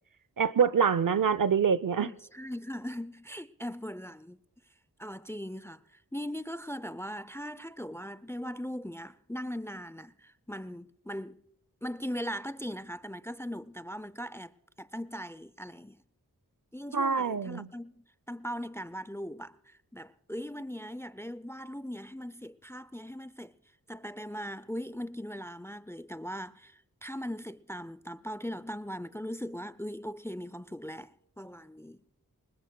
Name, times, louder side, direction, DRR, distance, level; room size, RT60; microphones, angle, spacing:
voice 1, 0.4-2.1 16.9-17.7, right 6 dB, 60° right, 0.7 m, -25 dB
voice 2, 2.0-4.4 5.0-11.4 11.8-16.0 16.7-23.6 23.9-32.0, equal, 5° left, 0.5 m, -39 dB
26.0 x 20.5 x 2.3 m
cardioid pair, 45°, 36 cm